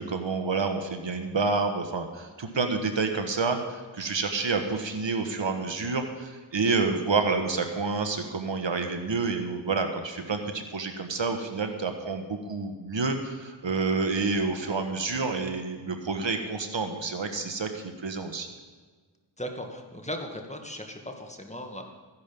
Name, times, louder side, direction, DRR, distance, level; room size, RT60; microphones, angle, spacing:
voice 1, 0.0-18.5, right 4 dB, 75° right, 6 dB, 1.5 m, -29 dB
voice 2, 19.4-21.9, equal, 15° left, 3 dB, 2.0 m, -37 dB
14.5 x 10.5 x 5.4 m, 1.5 s
cardioid pair, 45°, 45 cm